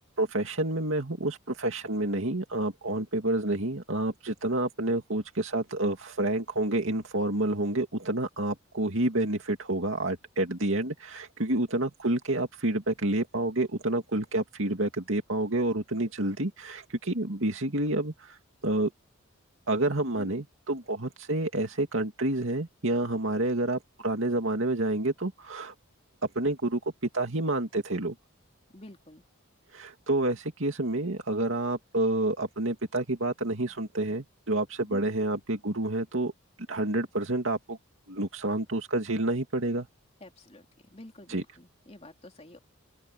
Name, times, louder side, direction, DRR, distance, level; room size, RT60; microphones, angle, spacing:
voice 1, 0.2-18.4 18.6-18.9 19.7-25.7 26.3-26.8 27.1-28.1 29.7-36.3 36.7-37.8 38.1-39.9 41.3-41.4, right 2 dB, 65° right, 2.4 m, -29 dB
voice 2, 28.7-29.2 34.9-35.1 40.2-42.6, left 1 dB, 30° left, 3.4 m, -48 dB
open air
head